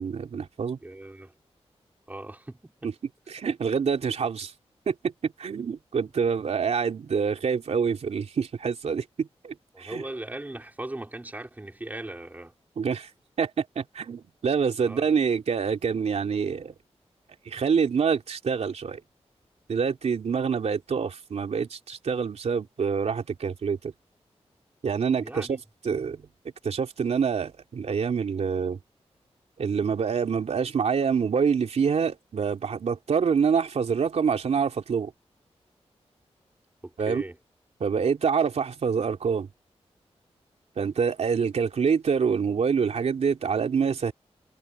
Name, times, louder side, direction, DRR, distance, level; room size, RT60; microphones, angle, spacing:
voice 1, 0.0-0.8 3.3-4.5 4.9-10.0 12.8-13.1 13.4-16.7 17.4-19.0 19.7-23.9 24.8-25.6 25.8-26.3 26.6-28.8 29.6-35.1 37.0-37.2 37.8-39.5 40.8-44.1, right 6 dB, 80° right, 3.5 m, -26 dB
voice 2, 0.8-1.3 2.1-2.9 9.7-12.5 14.8-15.1 22.6-22.7 25.2-25.6 36.8-37.4, right 1 dB, 15° right, 4.5 m, -38 dB
wide cardioid pair, 160°, 11 cm